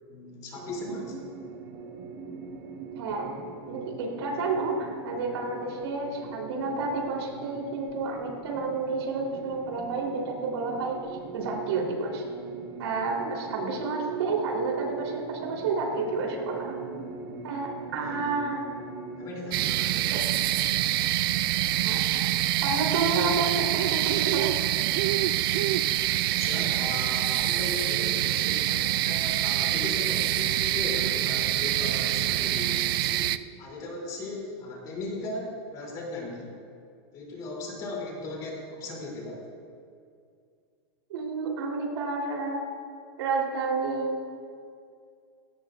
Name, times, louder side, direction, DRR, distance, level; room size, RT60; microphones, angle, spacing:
voice 1, 0.1-1.1 18.0-18.2 19.2-20.1 26.2-33.3 33.6-36.5 37.1-39.4, left 2 dB, 25° left, -2 dB, 3.1 m, -37 dB
sound 1, 0.5-19.6, right 5 dB, 30° right, 1.4 m, -40 dB
voice 2, 3.0-3.3 3.7-11.1 11.3-12.2 12.8-16.9 17.4-18.7 20.1-20.2 21.8-22.2 22.6-24.5 41.1-42.7 43.2-44.3, right 3 dB, 75° right, -1 dB, 3.6 m, -30 dB
sound 2, 19.5-33.4, right 14 dB, 60° right, 0.4 m, -26 dB
17.0 x 17.0 x 2.5 m, 2.3 s
supercardioid pair, 165°, 14 cm